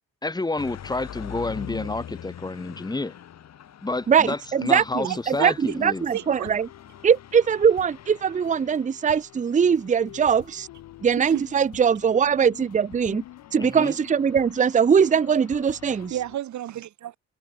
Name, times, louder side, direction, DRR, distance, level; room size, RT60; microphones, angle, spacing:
voice 1, 0.2-3.1 3.8-6.1 13.6-14.0, left 2 dB, 15° left, 1.3 m, -29 dB
sound 1, 0.6-16.1, left 10 dB, 60° left, 2.1 m, -45 dB
voice 2, 4.1-5.5 5.8-6.7 7.0-10.7 11.0-13.2 13.5-16.1, right 7 dB, 25° right, 0.6 m, -21 dB
voice 3, 5.0-5.8 6.1-6.5 11.2-11.4 15.8-17.2, right 12 dB, 70° right, 2.2 m, -32 dB
sound 2, 5.8-16.4, left 15 dB, 85° left, 6.9 m, -48 dB
cardioid pair, 90°, 30 cm